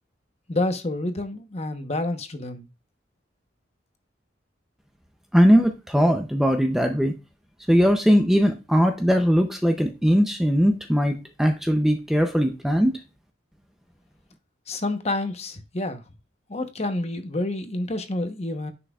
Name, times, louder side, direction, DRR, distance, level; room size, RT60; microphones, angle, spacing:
voice 1, 0.5-2.7 14.7-16.0 16.5-18.7, left 2 dB, 35° left, 0.9 m, -28 dB
voice 2, 5.3-7.1 7.7-13.0, equal, ahead, 0.5 m, -20 dB
9.8 x 5.7 x 2.3 m
head